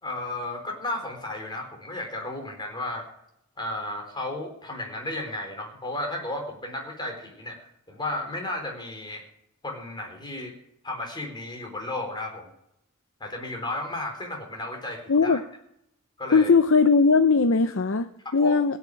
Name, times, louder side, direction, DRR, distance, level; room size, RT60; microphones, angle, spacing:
voice 1, 0.0-3.1 3.6-9.2 9.6-10.5 10.8-12.5 13.2-15.4 16.2-16.5 18.3-18.6, left 2 dB, 20° left, 2 dB, 3.6 m, -34 dB
voice 2, 15.1-15.4 16.3-18.8, left 4 dB, 65° left, 10 dB, 0.6 m, -19 dB
17.0 x 7.3 x 9.0 m, 0.78 s
head